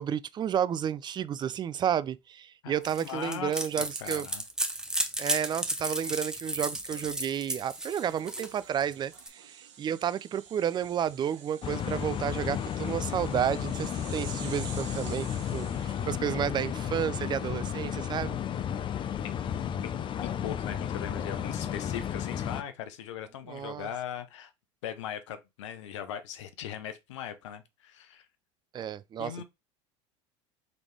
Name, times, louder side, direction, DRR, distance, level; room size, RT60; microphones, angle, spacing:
voice 1, 0.0-4.3 5.2-18.4 23.5-23.9 28.7-29.4, right 9 dB, 30° right, 0.4 m, -31 dB
voice 2, 2.6-4.4 19.8-24.5 24.8-28.3 29.2-29.4, left 9 dB, 80° left, 0.8 m, -39 dB
sound 1, 2.9-9.3, right 1 dB, 5° right, 0.8 m, -33 dB
sound 2, 7.6-16.2, right 8 dB, 80° right, 0.9 m, -49 dB
sound 3, 11.6-22.6, left 9 dB, 35° left, 0.5 m, -33 dB
3.9 x 3.4 x 3.1 m
hypercardioid pair, 90°, 15 cm